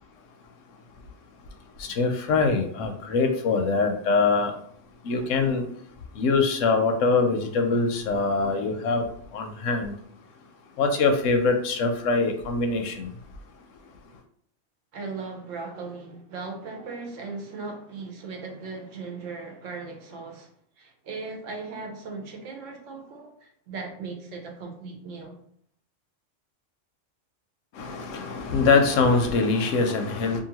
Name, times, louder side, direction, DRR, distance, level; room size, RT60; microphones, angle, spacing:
voice 1, 1.8-4.6 5.0-5.7 6.1-10.0 10.8-13.2 27.7-30.4, left 4 dB, 85° left, 0.9 m, -23 dB
voice 2, 14.9-20.5 20.8-25.3, right 4 dB, 85° right, 1.1 m, -38 dB
2.8 x 2.5 x 2.8 m
omnidirectional pair, 1.3 m